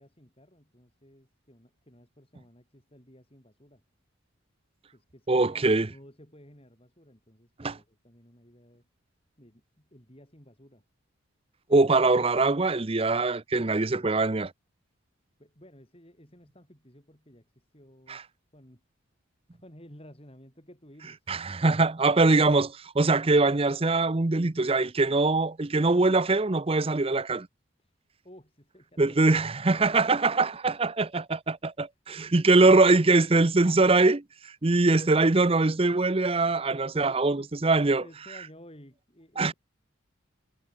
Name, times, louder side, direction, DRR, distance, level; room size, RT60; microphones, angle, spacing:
voice 1, 0.0-3.8 4.9-5.6 5.9-8.9 9.4-10.8 15.4-18.2 18.5-18.8 19.5-21.2 28.2-29.5 31.8-31.9 36.9-39.5, equal, 25° left, 7.3 m, -54 dB
voice 2, 5.3-5.9 7.6-7.8 11.7-14.5 18.1-18.2 21.3-27.5 29.0-38.0 39.4-39.5, right 3 dB, 25° right, 0.6 m, -23 dB
head